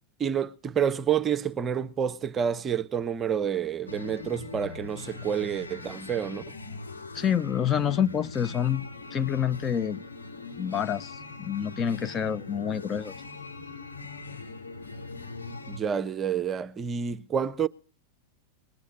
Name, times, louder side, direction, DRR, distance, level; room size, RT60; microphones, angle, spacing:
voice 1, 0.2-6.4 15.7-17.7, right 8 dB, 25° right, 0.7 m, -28 dB
sound 1, 3.9-15.8, left 3 dB, 75° left, 3.8 m, -41 dB
voice 2, 7.1-8.8 9.1-10.0 10.6-13.1, left 8 dB, 25° left, 0.7 m, -27 dB
20.5 x 8.3 x 7.4 m
figure-of-eight pair, 90°, 0 cm